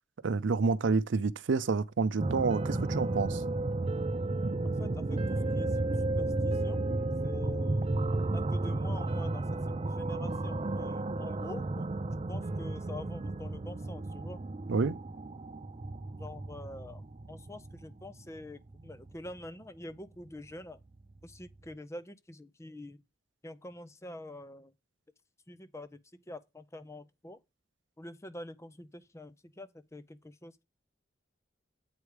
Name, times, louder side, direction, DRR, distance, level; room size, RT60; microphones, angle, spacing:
voice 1, 0.2-3.4 14.7-15.0, right 4 dB, 85° right, 0.5 m, -28 dB
sound 1, 2.2-19.5 21.1-21.2 21.5-21.6, right 2 dB, 30° right, 0.5 m, -33 dB
voice 2, 4.6-5.8 6.2-6.8 7.2-7.9 8.3-11.9 12.3-14.4 16.2-20.8 21.2-23.0 23.4-24.7 25.5-27.4 28.0-30.6, left 1 dB, 15° left, 0.6 m, -46 dB
8.2 x 4.8 x 4.9 m
head